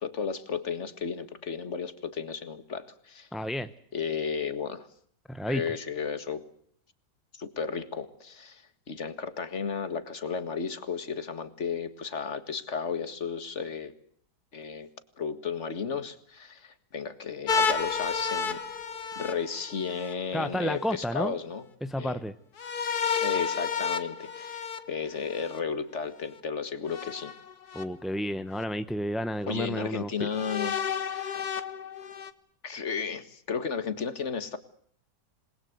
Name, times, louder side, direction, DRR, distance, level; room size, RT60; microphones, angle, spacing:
voice 1, 0.0-3.3 3.9-4.9 5.5-6.4 7.3-13.9 14.5-14.9 15.2-18.6 19.2-21.6 22.0-22.2 23.2-27.3 29.5-30.7 31.0-31.4 32.6-34.6, left 6 dB, 40° left, 11 dB, 2.0 m, -34 dB
voice 2, 3.3-3.7 5.3-5.6 20.3-21.3 21.8-22.4 27.7-30.3, equal, ahead, 11 dB, 0.4 m, -31 dB
sound 1, 17.5-20.1 22.6-25.6 26.9-27.8 28.6-28.7 30.3-32.3, left 6 dB, 65° left, 2.0 m, -31 dB
28.0 x 21.0 x 8.0 m, 0.63 s
omnidirectional pair, 1.9 m